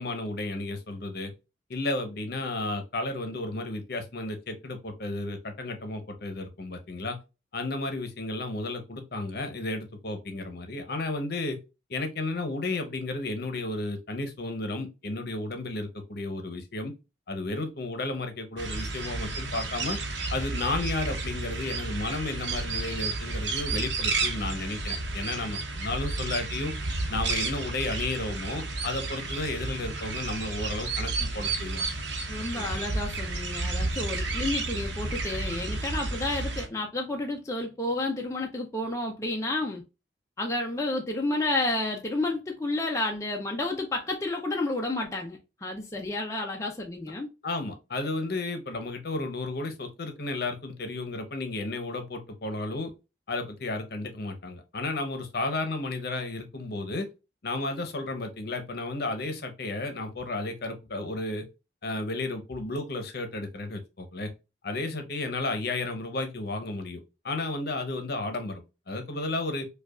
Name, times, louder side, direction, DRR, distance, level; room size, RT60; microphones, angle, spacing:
voice 1, 0.0-1.3 1.7-7.2 7.5-11.6 11.9-16.9 17.3-20.0 20.3-26.7 27.1-31.9 32.5-32.8 47.4-52.9 53.3-57.1 57.4-61.5 61.8-64.3 64.6-69.7, left 2 dB, 55° left, 0.8 m, -33 dB
sound 1, 18.6-36.7, right 3 dB, 70° right, 0.9 m, -32 dB
voice 2, 32.3-39.8 40.4-47.3, left 2 dB, 15° left, 0.5 m, -31 dB
5.0 x 2.3 x 2.3 m
head